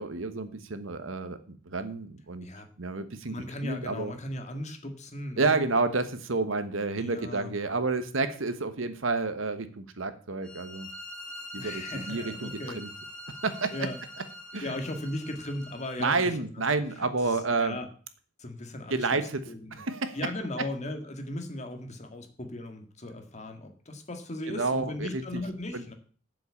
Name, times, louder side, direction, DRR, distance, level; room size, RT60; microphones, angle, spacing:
voice 1, 0.0-2.5 2.8-4.1 5.4-10.9 11.5-12.9 13.4-13.7 14.5-14.7 16.0-17.8 18.9-19.4 19.7-20.2 24.5-25.4 25.7-25.8, right 3 dB, 75° right, 11 dB, 1.2 m, -30 dB
voice 2, 3.3-5.6 7.0-7.5 11.6-12.8 13.7-14.0 14.6-16.6 17.0-17.9 18.4-19.2 19.5-19.8 20.1-25.9, left 1 dB, 35° left, 5 dB, 1.9 m, -37 dB
sound 1, 10.4-16.3, left 1 dB, 5° left, 4.5 m, -44 dB
7.7 x 7.5 x 8.4 m, 0.43 s
head